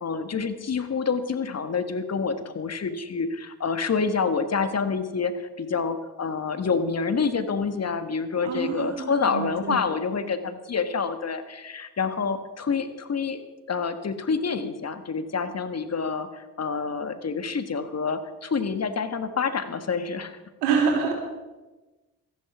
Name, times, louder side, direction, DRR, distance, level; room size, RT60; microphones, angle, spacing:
voice 1, 0.0-13.4 13.7-20.4, left 5 dB, 40° left, 10 dB, 1.5 m, -27 dB
voice 2, 8.4-9.8 20.6-21.1, right 5 dB, 85° right, 1 dB, 3.4 m, -26 dB
14.0 x 10.5 x 6.0 m, 1.2 s
hypercardioid pair, 50°, 38 cm